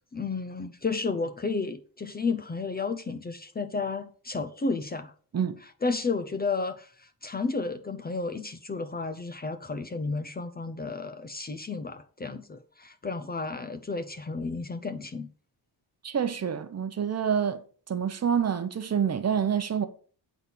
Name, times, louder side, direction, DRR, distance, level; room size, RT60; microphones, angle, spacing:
voice 1, 0.1-5.1 5.8-15.3, left 4 dB, 25° left, 0.6 m, -32 dB
voice 2, 16.0-17.6 17.9-19.9, right 7 dB, 40° right, 0.8 m, -27 dB
9.0 x 4.1 x 7.0 m
wide cardioid pair, 180°, 39 cm